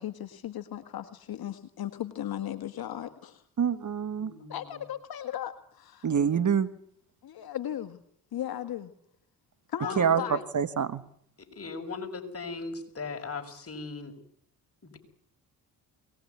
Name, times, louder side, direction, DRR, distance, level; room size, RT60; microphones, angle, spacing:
voice 1, 0.0-3.4 4.5-6.1 7.2-8.0 8.3-8.9 9.7-10.4, left 11 dB, 60° left, 8 dB, 1.8 m, -36 dB
voice 2, 3.6-4.3 6.0-6.7 10.0-11.0, right 7 dB, 45° right, 14 dB, 1.6 m, -26 dB
voice 3, 4.2-4.8 9.8-10.3 11.4-14.1 14.8-15.0, left 4 dB, 35° left, 4 dB, 6.3 m, -38 dB
23.0 x 20.0 x 9.6 m, 0.64 s
supercardioid pair, 60°, 42 cm